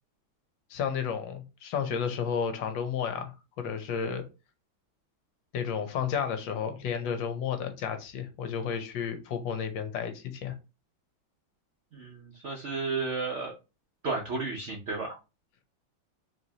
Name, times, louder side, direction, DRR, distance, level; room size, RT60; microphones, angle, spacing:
voice 1, 0.7-4.2 5.5-10.5, left 7 dB, 70° left, 1.4 m, -32 dB
voice 2, 11.9-13.5 14.0-15.2, right 3 dB, 70° right, 0.6 m, -33 dB
4.4 x 3.2 x 2.7 m
omnidirectional pair, 2.2 m